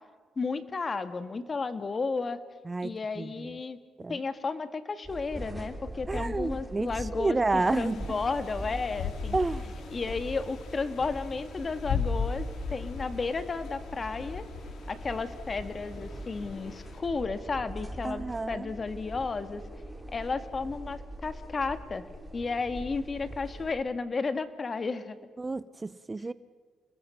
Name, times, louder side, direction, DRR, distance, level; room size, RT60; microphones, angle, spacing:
voice 1, 0.4-2.4 2.8-3.8 4.1-9.4 9.9-12.4 12.7-14.4 14.9-19.6 20.1-22.1 22.3-25.2, left 4 dB, 35° left, 11 dB, 1.7 m, -33 dB
voice 2, 2.7-3.5 4.0-4.2 6.1-8.2 9.3-9.7 18.0-18.7 25.4-26.3, right 3 dB, 25° right, 17 dB, 0.6 m, -30 dB
sound 1, 5.0-23.7, equal, ahead, 5.0 m, -42 dB
sound 2, 7.6-17.0, left 5 dB, 70° left, 3.6 m, -38 dB
30.0 x 20.5 x 5.7 m, 1.6 s
cardioid pair, 90°, 0 cm